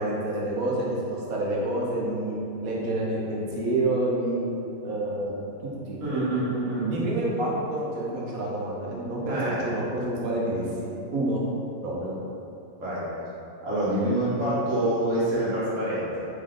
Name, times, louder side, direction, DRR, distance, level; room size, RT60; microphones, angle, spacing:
voice 1, 0.0-4.5 4.8-5.5 5.9-6.2 6.9-11.4 11.8-12.1, right 1 dB, 85° right, -4 dB, 1.3 m, -28 dB
voice 2, 6.0-6.9 9.3-9.7 12.8-13.1 13.6-16.3, right 1 dB, 65° right, -11 dB, 1.5 m, -26 dB
3.9 x 3.7 x 3.6 m, 2.7 s
omnidirectional pair, 1.4 m